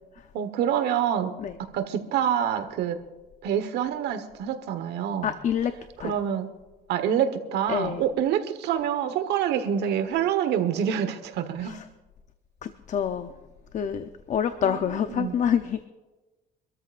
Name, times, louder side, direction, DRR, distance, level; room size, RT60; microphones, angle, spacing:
voice 1, 0.3-1.3 1.6-3.0 3.4-5.3 6.0-6.5 6.9-11.8 14.6-15.4, right 9 dB, 80° right, 9 dB, 1.4 m, -26 dB
voice 2, 5.2-5.7 6.0-6.2 7.7-8.1 11.6-11.9 12.6-13.3 13.7-15.9, left 8 dB, 45° left, 9 dB, 0.7 m, -27 dB
26.0 x 13.5 x 2.6 m, 1.2 s
cardioid pair, 110°, 17 cm